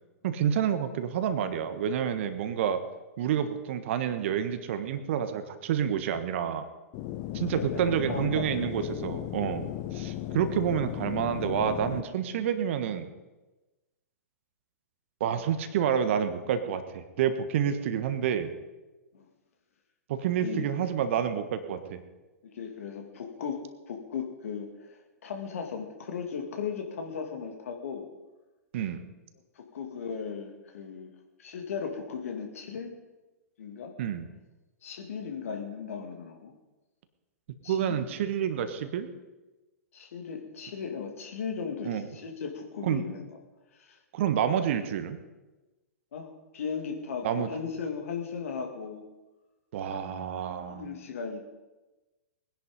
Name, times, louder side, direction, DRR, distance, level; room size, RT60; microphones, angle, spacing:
voice 1, 0.2-2.8 3.2-6.7 7.3-13.1 15.2-18.5 20.1-22.0 28.7-29.0 34.0-34.3 37.7-39.1 41.8-42.1 42.8-43.0 44.1-45.2 47.2-47.5 49.7-51.0, right 8 dB, 50° right, 10 dB, 1.4 m, -29 dB
sound 1, 6.9-12.0, left 13 dB, 35° left, 0.9 m, -36 dB
voice 2, 7.3-8.7 19.1-19.2 20.4-20.7 22.4-23.6 23.9-28.1 29.6-31.1 31.4-32.9 33.6-33.9 34.8-36.5 37.6-38.0 39.9-43.3 43.7-44.0 46.1-49.0 50.7-51.5, left 6 dB, 60° left, 4 dB, 2.5 m, -37 dB
20.0 x 10.5 x 5.4 m, 1.1 s
figure-of-eight pair, 110°, 9 cm